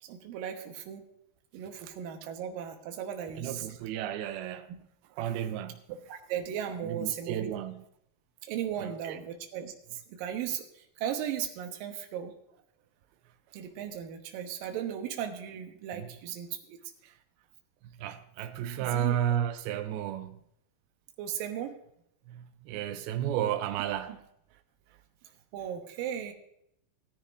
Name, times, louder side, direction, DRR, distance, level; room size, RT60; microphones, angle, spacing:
voice 1, 0.0-1.0 1.5-3.7 6.1-7.5 8.4-12.3 13.5-16.8 18.8-19.2 21.2-21.8 24.1-24.2 25.5-26.3, right 9 dB, 75° right, 2.7 m, -36 dB
voice 2, 3.4-4.7 5.2-5.8 6.8-7.8 8.8-9.2 15.9-16.1 17.0-17.1 17.8-20.4 22.3-24.2, right 10 dB, 90° right, 2.6 m, -33 dB
19.0 x 10.0 x 2.5 m
omnidirectional pair, 4.2 m